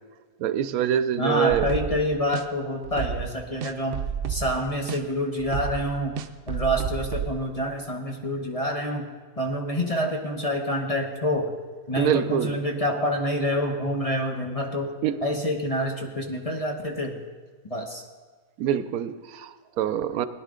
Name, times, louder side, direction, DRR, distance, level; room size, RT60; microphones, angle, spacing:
voice 1, 0.4-1.7 12.0-12.6 15.0-15.2 18.6-20.3, right 9 dB, 85° right, 13 dB, 1.1 m, -25 dB
voice 2, 1.2-4.0 4.3-9.1 9.4-11.5 11.9-14.9 15.2-17.2 17.6-18.0, equal, 30° left, 2 dB, 0.9 m, -27 dB
sound 1, 1.5-2.0 2.3-2.4 2.8-3.3 3.6-4.6 4.9-5.0 5.4-7.3, right 8 dB, 65° right, 0.5 m, -31 dB
18.0 x 10.5 x 3.7 m, 1.4 s
omnidirectional pair, 1.5 m